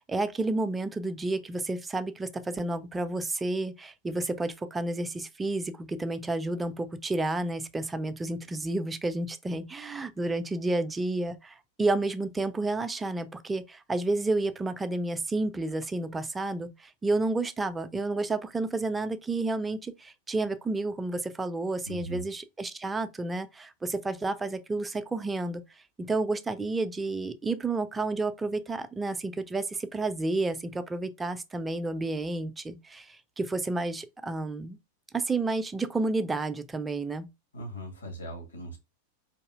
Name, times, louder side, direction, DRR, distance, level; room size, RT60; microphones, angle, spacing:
voice 1, 0.0-25.6 26.0-34.8 35.1-37.3, right 2 dB, 10° right, 0.4 m, -31 dB
voice 2, 21.9-22.3 37.5-38.8, right 1 dB, 75° left, 1.5 m, -39 dB
4.0 x 2.7 x 2.4 m
figure-of-eight pair, 90°, 0 cm